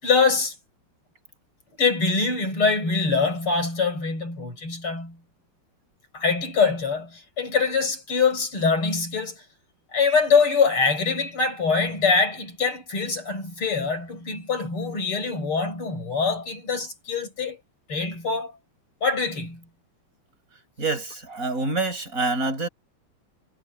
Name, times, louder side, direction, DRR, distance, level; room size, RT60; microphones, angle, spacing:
voice 1, 0.0-0.5 1.8-5.2 6.1-9.4 9.9-17.6 17.9-18.5 19.0-19.6, left 4 dB, 85° left, 8.4 m, -24 dB
voice 2, 20.8-22.7, right 3 dB, 40° right, 7.6 m, -26 dB
omnidirectional pair, 2.3 m